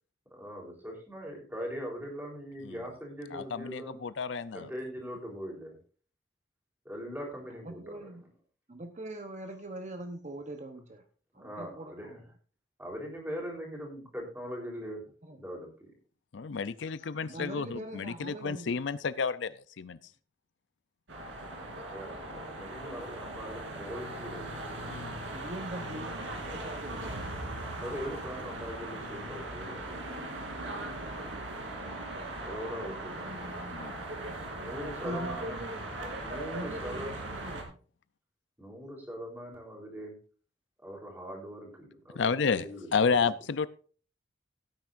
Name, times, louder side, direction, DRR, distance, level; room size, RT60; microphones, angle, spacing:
voice 1, 0.3-4.0 4.5-5.8 6.8-8.1 11.3-12.3 12.8-15.9 21.9-25.4 27.8-30.2 32.4-33.5 34.5-35.6 36.2-37.1 38.6-40.2 40.8-43.3, equal, 10° right, 0 dB, 3.8 m, -41 dB
voice 2, 3.3-4.7 16.3-20.0 24.9-25.2 33.7-33.9 42.1-43.7, left 5 dB, 70° left, 15 dB, 0.5 m, -31 dB
voice 3, 7.6-8.2 8.7-11.0 11.3-12.2 15.3-15.4 17.2-18.7 25.3-27.0 35.0-35.9 36.4-37.8, right 1 dB, 35° right, 6 dB, 0.9 m, -42 dB
sound 1, 21.1-37.6, right 2 dB, 80° right, 3.2 m, -39 dB
16.5 x 9.3 x 2.6 m, 0.40 s
head